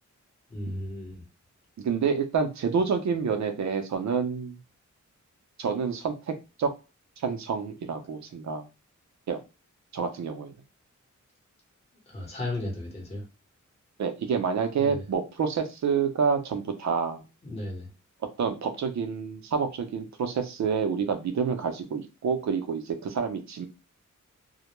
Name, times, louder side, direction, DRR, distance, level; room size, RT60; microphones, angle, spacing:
voice 1, 0.5-1.2 12.1-13.2 14.8-15.0 17.4-17.9, left 1 dB, 20° left, 0.9 m, -35 dB
voice 2, 1.8-4.6 5.6-6.7 7.2-8.7 9.3-9.4 9.9-10.6 14.0-17.2 18.4-23.7, right 6 dB, 65° right, 0.5 m, -28 dB
2.2 x 2.1 x 2.9 m
wide cardioid pair, 135°, 31 cm